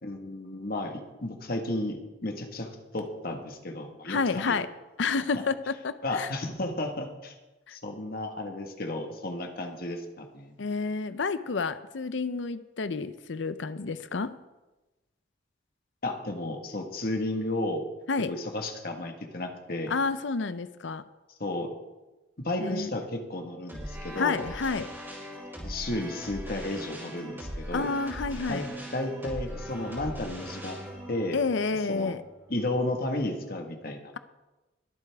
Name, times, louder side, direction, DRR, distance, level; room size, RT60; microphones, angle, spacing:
voice 1, 0.0-4.6 5.3-5.4 6.0-7.3 7.7-10.5 16.0-17.8 18.3-19.9 21.4-21.7 22.4-24.4 25.6-27.9 28.5-30.8 31.1-31.4 31.9-32.1 32.5-34.0, left 1 dB, 50° left, 4 dB, 1.6 m, -33 dB
voice 2, 4.0-4.7 5.0-6.3 7.7-7.8 10.6-14.4 18.1-18.3 19.9-21.0 22.6-22.9 24.2-24.9 27.7-28.7 31.3-32.2, left 4 dB, 70° left, 13 dB, 0.6 m, -30 dB
sound 1, 23.7-32.8, equal, 10° right, 4.3 m, -40 dB
22.0 x 8.2 x 3.5 m, 1.1 s
head